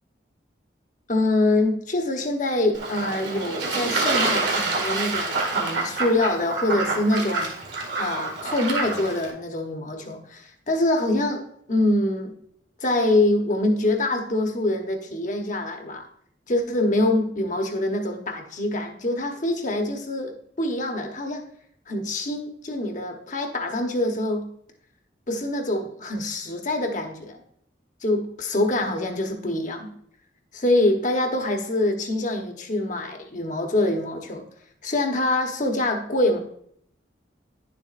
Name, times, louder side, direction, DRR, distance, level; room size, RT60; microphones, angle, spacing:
voice 1, 1.1-7.5 8.0-12.4 12.8-16.1 16.5-21.4 21.9-24.5 25.3-27.4 28.0-29.9 30.5-34.5 34.8-36.4, left 1 dB, 45° left, 4 dB, 1.0 m, -25 dB
Fowl / Bird / Water, 2.7-9.3, right 3 dB, 75° right, 2.0 m, -27 dB
10.0 x 7.0 x 2.5 m, 0.67 s
head